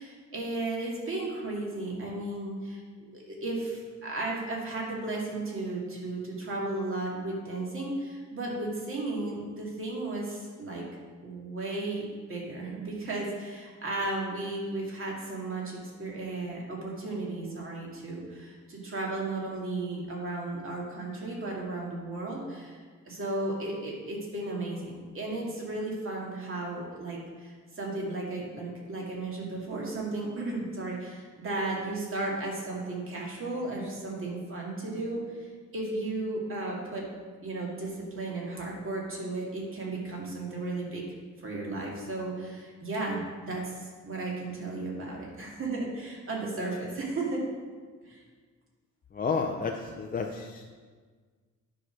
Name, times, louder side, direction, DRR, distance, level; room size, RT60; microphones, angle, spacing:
voice 1, 0.0-2.8 3.1-10.8 11.2-22.8 23.1-35.5 35.7-37.0 37.4-41.0 41.4-47.4 48.0-48.2, right 2 dB, 45° right, -2 dB, 2.2 m, -34 dB
voice 2, 49.1-50.6, left 5 dB, 30° left, 2 dB, 0.5 m, -31 dB
9.7 x 4.9 x 6.2 m, 1.5 s
wide cardioid pair, 160°, 30 cm